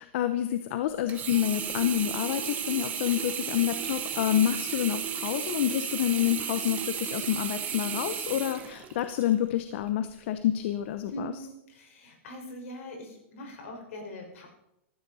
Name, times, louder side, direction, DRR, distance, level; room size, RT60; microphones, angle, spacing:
voice 1, 0.0-11.3, left 12 dB, 55° left, 10 dB, 0.9 m, -28 dB
Sink (filling or washing), 1.1-9.3 9.9-10.0, right 8 dB, 20° right, 1.2 m, -34 dB
voice 2, 11.1-14.5, equal, 75° left, 2 dB, 5.4 m, -42 dB
14.5 x 13.5 x 4.2 m, 0.82 s
supercardioid pair, 150°, 7 cm